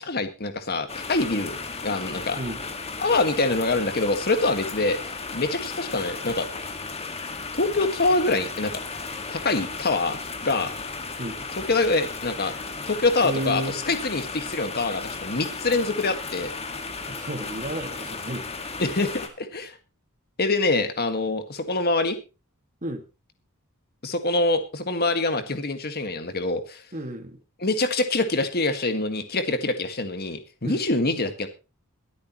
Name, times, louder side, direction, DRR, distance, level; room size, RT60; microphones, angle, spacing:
voice 1, 0.0-2.4 3.0-6.5 7.5-8.8 9.3-10.7 11.7-12.5 12.9-16.5 18.8-19.8 20.4-22.2 24.0-26.8 27.6-31.5, left 2 dB, 45° left, 8 dB, 1.8 m, -25 dB
sound 1, 0.9-19.3, left 4 dB, 30° left, 1.9 m, -35 dB
voice 2, 13.2-13.8 17.1-18.5 22.8-23.0 26.9-27.4 30.6-30.8, right 1 dB, 35° right, 6 dB, 2.0 m, -32 dB
22.5 x 8.5 x 3.1 m, 0.30 s
head